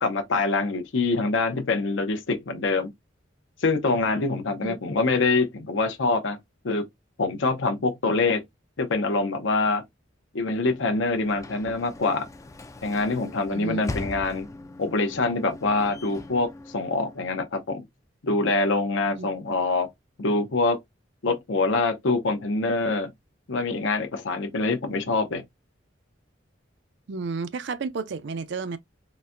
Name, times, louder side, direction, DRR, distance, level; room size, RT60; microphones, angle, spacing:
voice 1, 0.0-2.9 3.6-6.4 6.6-6.8 7.2-8.4 8.8-9.8 10.3-12.3 12.8-14.5 14.8-17.8 18.2-19.9 20.2-20.8 21.2-23.1 23.5-25.4, left 3 dB, 75° left, 0.6 m, -25 dB
Sliding door / Slam, 10.5-17.5, left 2 dB, 15° left, 0.3 m, -40 dB
voice 2, 13.5-13.8 19.1-19.3 27.1-28.8, right 4 dB, 65° right, 0.5 m, -32 dB
3.9 x 2.1 x 2.4 m
head